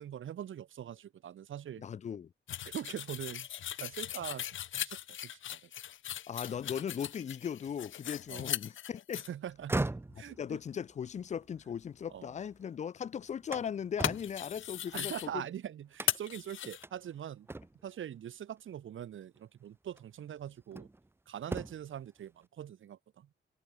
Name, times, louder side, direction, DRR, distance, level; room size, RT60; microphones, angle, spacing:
voice 1, 0.0-1.8 2.6-3.5 3.8-5.7 8.3-8.6 9.3-9.9 10.2-10.6 12.1-12.3 14.9-17.5 17.8-20.9 21.3-23.3, right 10 dB, 85° right, 1.7 m, -43 dB
voice 2, 1.8-2.3 6.3-9.2 10.2-15.4, left 8 dB, 35° left, 0.4 m, -38 dB
sound 1, 2.5-9.3 14.0-15.3 16.1-16.8, left 11 dB, 85° left, 0.8 m, -38 dB
sound 2, 9.5-12.6 13.0-15.4 15.9-16.4 16.8-16.9 17.5-18.0 19.2-19.4 19.9-21.1 21.4-22.0, right 2 dB, 10° right, 1.0 m, -40 dB
wide cardioid pair, 170°, 20 cm